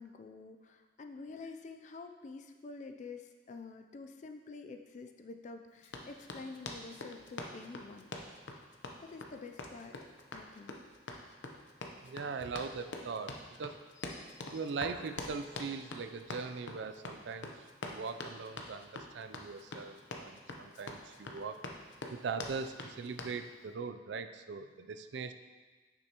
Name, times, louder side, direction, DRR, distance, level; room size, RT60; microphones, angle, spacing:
voice 1, 0.0-8.1 9.0-10.0 10.3-10.8 14.0-14.6, left 4 dB, 40° left, 6 dB, 0.4 m, -48 dB
Run, 5.8-23.4, left 2 dB, 85° left, 0.7 m, -45 dB
voice 2, 12.0-13.8 14.5-21.6 22.1-25.3, right 5 dB, 75° right, 10 dB, 0.4 m, -41 dB
9.5 x 6.1 x 2.9 m, 1.3 s
head